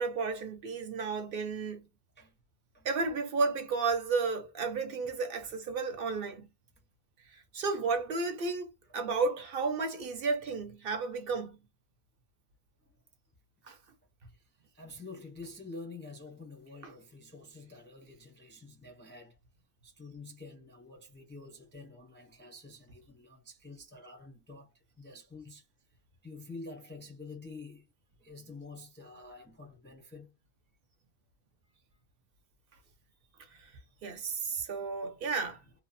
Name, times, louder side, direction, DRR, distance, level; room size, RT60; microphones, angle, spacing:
voice 1, 0.0-1.9 2.8-6.5 7.3-11.6 13.7-13.8 16.8-16.9 33.6-33.7 34.0-35.6, right 4 dB, 65° right, 0.8 m, -33 dB
voice 2, 14.7-19.4 19.8-24.7 25.0-25.6 26.2-27.9 28.2-30.3, left 3 dB, 15° left, 0.4 m, -48 dB
2.9 x 2.0 x 2.5 m
omnidirectional pair, 1.1 m